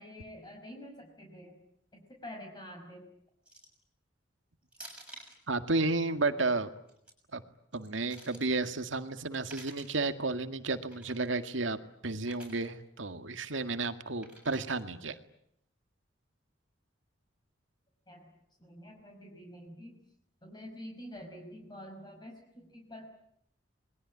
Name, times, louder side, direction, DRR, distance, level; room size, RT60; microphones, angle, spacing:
voice 1, 0.0-1.6 1.9-3.1 18.1-18.3 18.6-20.0 20.4-23.1, equal, 25° left, 2 dB, 5.4 m, -47 dB
sound 1, 3.5-3.8 4.7-5.4 6.8-7.1 7.7-8.5 9.3-10.0 10.9-11.3 12.2-12.7 14.2-14.8, right 1 dB, 5° right, 6.6 m, -51 dB
voice 2, 5.5-6.7 7.3-7.4 7.7-11.8 12.0-15.2, right 3 dB, 85° right, 9 dB, 2.0 m, -32 dB
27.5 x 22.0 x 9.8 m, 0.74 s
head